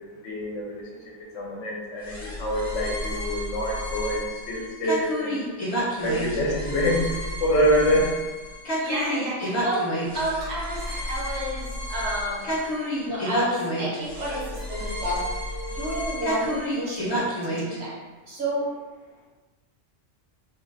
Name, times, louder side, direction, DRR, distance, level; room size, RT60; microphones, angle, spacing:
voice 1, 0.2-0.8 1.3-5.4 6.0-7.1 7.4-8.2 14.0-14.6 14.8-15.0 15.5-16.0, equal, 70° left, -3 dB, 1.0 m, -26 dB
sound 1, 2.0-17.8, equal, 35° left, 0.8 m, -30 dB
voice 2, 8.8-12.5 13.0-15.2 15.7-17.9 18.3-18.7, equal, 55° right, -5 dB, 1.0 m, -30 dB
3.8 x 2.1 x 2.5 m, 1.3 s
omnidirectional pair, 1.4 m